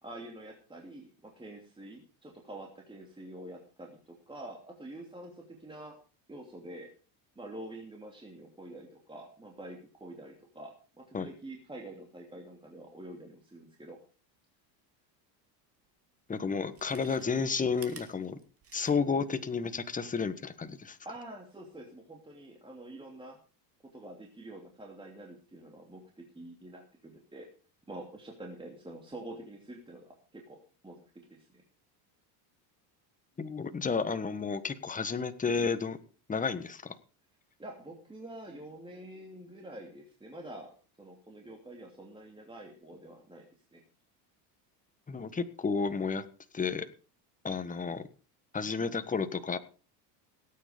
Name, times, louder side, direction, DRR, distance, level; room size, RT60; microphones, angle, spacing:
voice 1, 0.0-6.0 6.3-6.9 7.4-14.0 21.0-23.4 23.9-27.5 27.9-30.6 30.8-31.0 31.3-31.6 37.6-40.7 41.0-43.8, right 1 dB, 10° right, 1 dB, 2.9 m, -47 dB
Chewing mastication, 15.8-15.9 16.6-19.3 19.6-19.7, right 6 dB, 30° right, 2.7 m, -52 dB
voice 2, 16.3-18.4 18.7-21.0 33.4-36.0 36.3-37.0 45.1-46.2 46.5-46.9 47.4-48.1 48.5-49.6, left 5 dB, 15° left, 10 dB, 1.4 m, -31 dB
18.0 x 9.4 x 5.2 m, 0.37 s
supercardioid pair, 120°, 49 cm